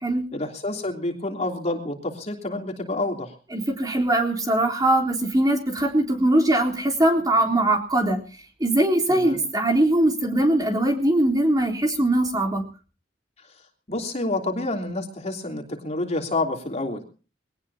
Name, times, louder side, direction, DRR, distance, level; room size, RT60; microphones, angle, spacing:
voice 1, 0.3-3.3 9.1-9.4 13.9-17.0, left 2 dB, 40° left, 2 dB, 3.3 m, -28 dB
voice 2, 3.5-8.2 8.6-12.6, right 1 dB, 20° right, 1 dB, 3.7 m, -21 dB
22.5 x 18.5 x 2.8 m, 0.36 s
head